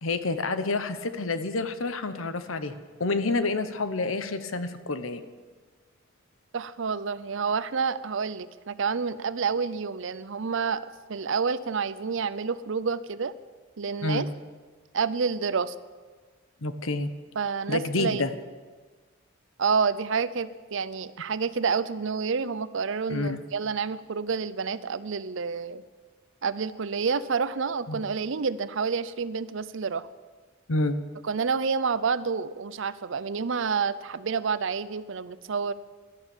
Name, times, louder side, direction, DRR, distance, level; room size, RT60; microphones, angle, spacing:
voice 1, 0.0-2.7 3.0-5.2 14.0-14.2 16.6-17.1 17.7-18.3 23.1-23.4 27.9-28.0 30.7-31.0, left 3 dB, 80° left, 11 dB, 1.0 m, -28 dB
voice 2, 6.5-13.3 13.8-14.2 14.9-15.7 17.4-18.2 19.6-25.8 26.4-30.1 31.2-35.7, right 5 dB, 65° right, 16 dB, 0.6 m, -29 dB
13.0 x 12.0 x 7.3 m, 1.4 s
head